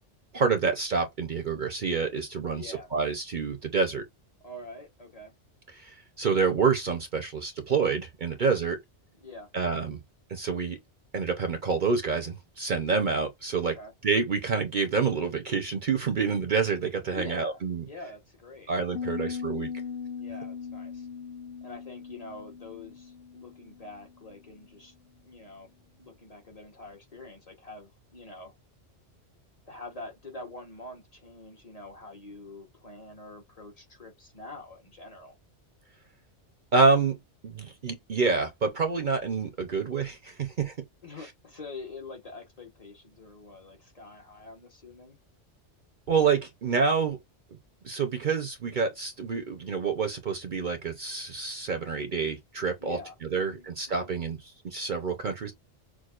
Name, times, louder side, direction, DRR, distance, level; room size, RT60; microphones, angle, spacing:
voice 1, 0.3-4.0 5.8-8.8 9.5-10.0 10.3-10.8 11.1-13.8 14.0-17.9 18.7-19.7 36.7-37.2 37.4-40.7 46.1-47.2 47.8-53.0 53.3-55.5, right 5 dB, 50° right, 0.8 m, -27 dB
voice 2, 2.5-2.9 4.4-5.3 8.3-8.6 9.2-9.5 13.7-13.9 17.1-17.6 17.9-18.7 19.1-19.4 19.6-21.1 21.6-24.9 25.2-25.7 26.0-28.5 29.7-35.4 41.0-45.2 52.8-54.2, left 2 dB, 35° left, 1.1 m, -45 dB
Piano, 18.9-24.5, left 6 dB, 90° left, 1.2 m, -39 dB
6.2 x 2.3 x 2.4 m
omnidirectional pair, 1.2 m